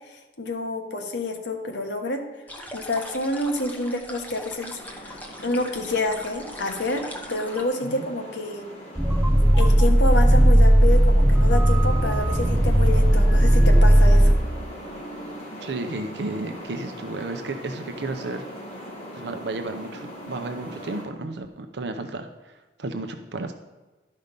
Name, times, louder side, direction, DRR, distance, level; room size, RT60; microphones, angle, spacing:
voice 1, 0.1-2.2 2.7-7.0 7.3-8.6 9.5-14.3, left 2 dB, 75° left, 4 dB, 1.2 m, -28 dB
sound 1, 2.5-7.6, equal, 10° left, 0.9 m, -40 dB
sound 2, 4.7-21.0, equal, 35° left, 2.4 m, -40 dB
sound 3, 9.0-14.4, right 1 dB, 10° right, 0.6 m, -16 dB
voice 2, 15.6-18.4 19.1-23.5, right 2 dB, 65° right, 6 dB, 0.6 m, -33 dB
12.0 x 5.4 x 5.2 m, 1.2 s
head